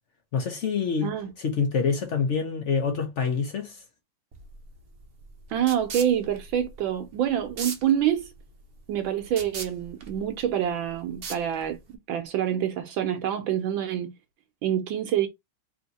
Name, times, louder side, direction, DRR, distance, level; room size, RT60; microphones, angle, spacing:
voice 1, 0.3-3.8, left 5 dB, 75° left, 0.6 m, -26 dB
voice 2, 1.0-1.3 5.5-8.3 8.9-11.8 12.1-14.1 14.6-15.3, right 10 dB, 75° right, 1.3 m, -26 dB
sound 1, 4.3-12.0, right 5 dB, 60° right, 0.6 m, -41 dB
3.5 x 2.7 x 3.9 m
omnidirectional pair, 2.3 m